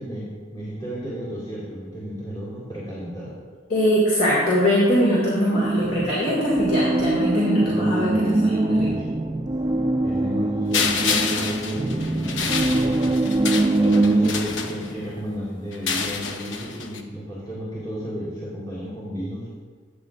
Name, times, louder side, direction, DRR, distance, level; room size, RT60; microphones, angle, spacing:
voice 1, 0.0-3.4 7.7-9.0 10.0-13.0 13.7-19.5, equal, 25° left, -8 dB, 2.1 m, -33 dB
voice 2, 3.7-8.9, equal, 55° left, -6 dB, 2.1 m, -22 dB
sound 1, 5.5-14.3, right 2 dB, 25° right, 0.4 m, -23 dB
sound 2, 10.7-15.2 15.7-17.0, left 5 dB, 80° left, 0.7 m, -28 dB
13.0 x 8.6 x 2.5 m, 1.5 s
head